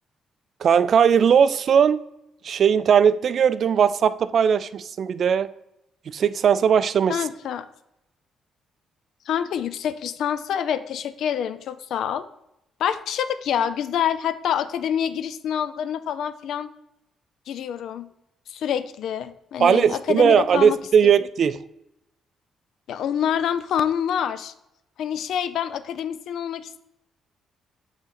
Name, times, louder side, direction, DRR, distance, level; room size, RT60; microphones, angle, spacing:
voice 1, 0.6-2.0 2.4-5.5 6.1-7.2 19.6-21.6, right 7 dB, 55° right, 0.3 m, -18 dB
voice 2, 7.1-7.7 9.3-12.2 12.8-16.7 17.5-18.1 18.5-20.8 22.9-24.5 25.0-26.8, left 9 dB, 75° left, 0.4 m, -26 dB
7.1 x 4.0 x 4.0 m
cardioid pair, 90°, 0 cm